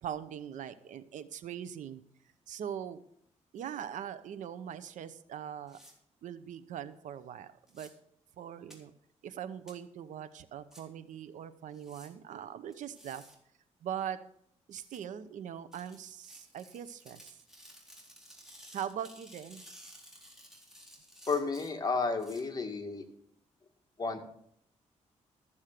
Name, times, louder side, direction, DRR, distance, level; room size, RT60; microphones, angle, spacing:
voice 1, 0.0-2.0 2.5-3.0 3.5-5.8 6.2-7.9 8.4-8.9 9.2-13.2 13.8-14.2 14.7-17.4 18.7-19.7, right 9 dB, 85° right, 13 dB, 0.9 m, -41 dB
sound 1, 5.7-5.9 7.7-7.9 8.7-8.8 9.7-9.8 10.7-10.8 11.7-12.1 12.7-13.4 14.7-15.0 15.7-22.4, equal, 5° right, 3.7 m, -55 dB
voice 2, 21.3-23.1 24.0-24.2, left 4 dB, 30° left, 3 dB, 2.0 m, -32 dB
14.0 x 7.3 x 6.6 m, 0.67 s
cardioid pair, 95°, 12 cm